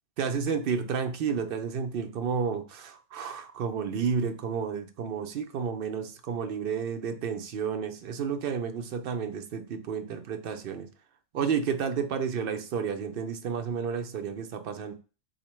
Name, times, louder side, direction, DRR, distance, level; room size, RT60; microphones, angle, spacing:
voice 1, 0.2-10.9 11.3-14.9, right 6 dB, 60° right, 7 dB, 0.7 m, -31 dB
4.1 x 2.8 x 3.0 m, 0.34 s
omnidirectional pair, 1.1 m